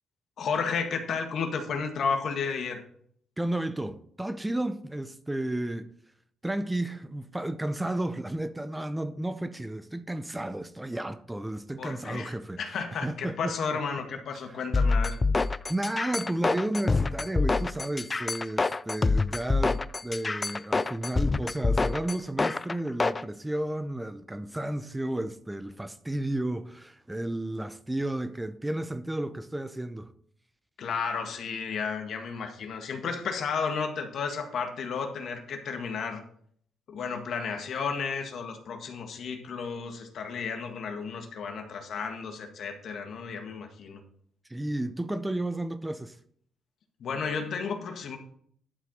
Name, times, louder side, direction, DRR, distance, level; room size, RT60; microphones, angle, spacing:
voice 1, 0.4-2.8 11.8-15.2 30.8-36.2 36.9-44.0 47.0-48.2, left 5 dB, 65° left, 1.8 m, -33 dB
voice 2, 3.4-5.9 6.4-13.6 14.5-14.6 15.7-30.1 44.5-46.2, right 1 dB, 10° right, 0.7 m, -32 dB
sound 1, 14.7-23.2, left 3 dB, 25° left, 0.3 m, -26 dB
11.5 x 4.5 x 6.4 m
cardioid pair, 90°, 0 cm